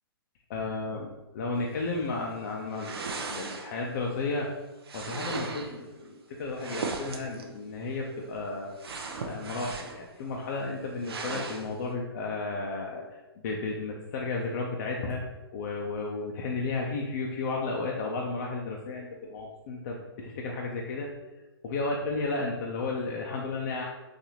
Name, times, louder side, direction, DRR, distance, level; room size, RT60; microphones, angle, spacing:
voice 1, 0.5-4.5 4.9-8.7 9.2-15.2 15.5-21.1 21.6-23.8, left 3 dB, 50° left, -1 dB, 0.5 m, -33 dB
sound 1, 2.7-3.9 4.8-5.8 6.5-7.5 8.8-10.1 10.4-10.5 11.0-11.7, right 4 dB, 80° right, 0.6 m, -37 dB
4.0 x 2.6 x 3.0 m, 1.1 s
hypercardioid pair, 135°, 13 cm